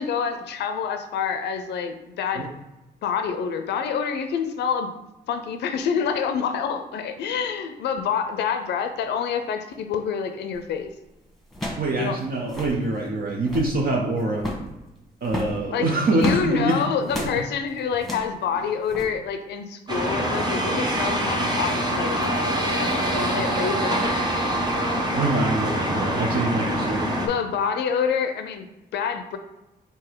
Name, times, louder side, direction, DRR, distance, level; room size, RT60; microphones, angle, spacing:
voice 1, 0.0-2.5 3.0-4.9 5.3-10.9 12.0-12.2 15.7-22.4 22.7-24.3 27.1-29.4, left 6 dB, 80° left, 7 dB, 0.5 m, -27 dB
sound 1, 10.5-10.8 11.5-11.9 12.2-12.3 12.4-12.8 13.3-13.8 14.4-14.7 15.2-16.5 17.1-17.4 18.0-18.3 18.9-19.1, left 1 dB, ahead, 1.2 m, -31 dB
voice 2, 11.8-14.5 15.2-16.8 17.2-17.3 25.1-27.0, right 2 dB, 60° right, -1 dB, 0.7 m, -24 dB
sound 2, 19.9-27.3, right 1 dB, 25° right, 1.0 m, -25 dB
3.8 x 2.7 x 4.6 m, 0.98 s
cardioid pair, 80°, 17 cm